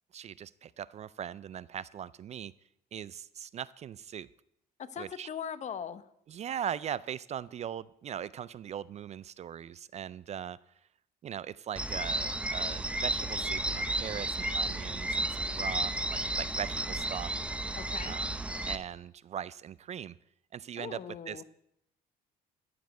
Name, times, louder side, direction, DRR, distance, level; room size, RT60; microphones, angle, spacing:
voice 1, 0.1-2.5 2.9-4.3 5.0-5.3 6.3-10.6 11.2-17.3 18.1-18.3 18.7-20.2 20.5-21.0 21.3-21.4, right 9 dB, 40° right, 19 dB, 0.4 m, -40 dB
voice 2, 4.8-6.1 17.8-18.1 20.8-21.4, left 8 dB, 45° left, 14 dB, 0.8 m, -40 dB
sound 1, 11.8-18.8, right 1 dB, 5° right, 0.7 m, -33 dB
14.5 x 5.1 x 8.2 m, 0.76 s
cardioid pair, 110°, 17 cm